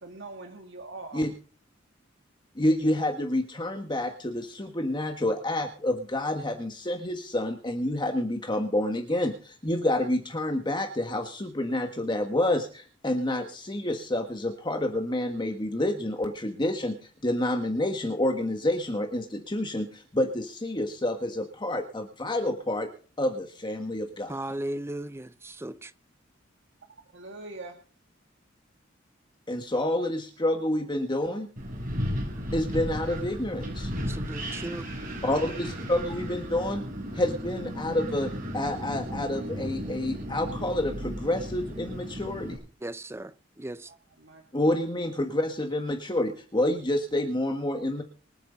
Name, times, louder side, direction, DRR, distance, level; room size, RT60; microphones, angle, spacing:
voice 1, 0.0-1.3 27.1-27.8 35.3-35.4 43.2-43.3 44.2-44.4, right 2 dB, 65° right, 2.1 m, -42 dB
voice 2, 2.5-16.9 17.2-22.9 23.2-24.5 29.5-31.5 32.5-33.9 35.2-36.8 37.1-42.6 44.5-48.0, left 1 dB, 25° left, 1.6 m, -28 dB
voice 3, 24.3-25.9 34.0-34.9 42.8-43.9, right 1 dB, 15° right, 0.6 m, -36 dB
Wind, 31.6-42.6, equal, 45° right, 6.9 m, -35 dB
25.0 x 9.1 x 4.0 m
head